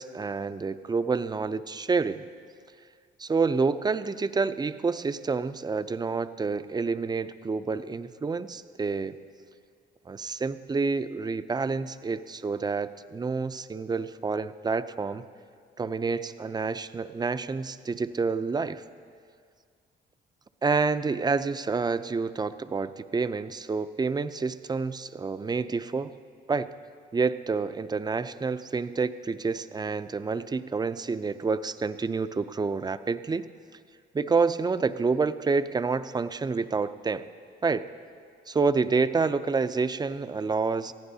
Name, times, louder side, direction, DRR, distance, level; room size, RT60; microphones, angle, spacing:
voice 1, 0.0-2.2 3.2-9.2 10.1-15.2 15.8-18.8 20.6-26.1 26.5-26.7 27.1-33.5 34.1-37.3 37.6-37.9 38.5-40.9, right 4 dB, 20° right, 12 dB, 0.4 m, -28 dB
21.0 x 15.0 x 2.7 m, 2.1 s
cardioid pair, 90°, 20 cm